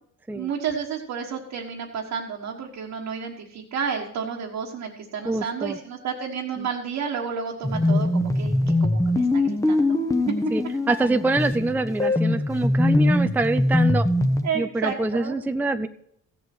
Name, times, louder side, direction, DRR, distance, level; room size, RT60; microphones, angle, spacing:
voice 1, 0.3-8.5 8.8-10.0 14.4-15.3, right 6 dB, 75° right, -2 dB, 1.5 m, -31 dB
voice 2, 5.2-5.8 6.6-6.7 10.5-14.0 14.5-15.9, right 2 dB, 5° right, 9 dB, 0.5 m, -25 dB
sound 1, 7.6-14.5, left 1 dB, 10° left, 1.0 m, -22 dB
15.0 x 7.4 x 4.4 m, 0.72 s
cardioid pair, 90°, 30 cm